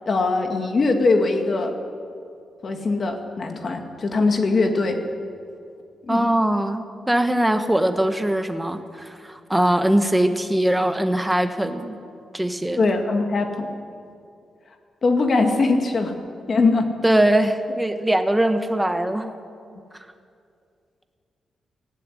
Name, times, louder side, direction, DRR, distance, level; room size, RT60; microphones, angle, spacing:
voice 1, 0.1-1.8 2.6-5.0 6.1-6.3 12.8-13.7 15.0-16.1 16.5-16.9, left 3 dB, 35° left, 5 dB, 2.2 m, -21 dB
voice 2, 6.1-12.0 12.3-12.9 17.0-19.3, right 1 dB, 5° right, 7 dB, 1.3 m, -21 dB
18.0 x 16.0 x 10.0 m, 2.4 s
wide cardioid pair, 155°, 0 cm